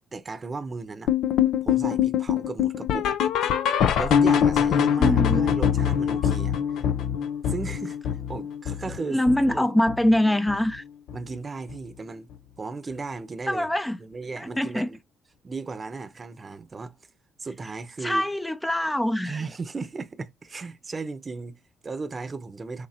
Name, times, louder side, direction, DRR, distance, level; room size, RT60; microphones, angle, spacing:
voice 1, 0.1-1.1 1.6-3.1 4.0-6.9 7.5-9.2 9.5-9.7 11.1-12.3 12.6-13.7 14.0-15.0 15.4-17.0 17.4-18.3 19.2-22.9, right 4 dB, 35° right, 0.8 m, -35 dB
sound 1, 1.1-10.2 10.5-10.8 11.1-11.2 11.7-11.8 12.3-12.4, left 8 dB, 70° left, 0.5 m, -24 dB
voice 2, 5.0-5.5 9.1-10.8 13.5-14.0 14.4-14.9 18.0-19.4, left 1 dB, 10° left, 0.5 m, -24 dB
6.6 x 2.8 x 2.7 m
hypercardioid pair, 50°, 0 cm